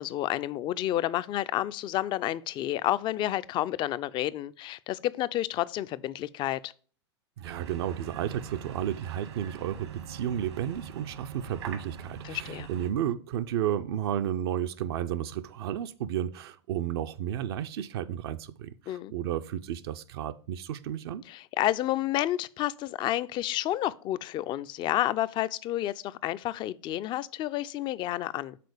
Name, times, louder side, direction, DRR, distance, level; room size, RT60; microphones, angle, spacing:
voice 1, 0.0-6.7 12.2-12.7 18.9-19.1 21.3-28.6, left 14 dB, 35° left, 0.4 m, -30 dB
voice 2, 7.4-21.2, right 10 dB, 65° right, 0.5 m, -32 dB
sound 1, 7.4-12.9, right 7 dB, 80° right, 1.3 m, -43 dB
6.7 x 3.8 x 4.9 m
hypercardioid pair, 95°, 14 cm